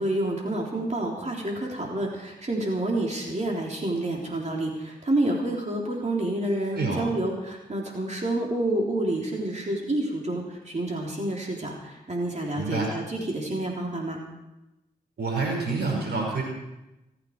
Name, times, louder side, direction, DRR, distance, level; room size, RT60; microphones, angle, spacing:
voice 1, 0.0-14.2, right 1 dB, 40° right, -1 dB, 3.7 m, -28 dB
voice 2, 6.7-7.0 12.6-12.9 15.2-16.4, right 4 dB, 75° right, 0 dB, 5.4 m, -27 dB
26.5 x 9.0 x 4.8 m, 0.97 s
supercardioid pair, 45°, 17 cm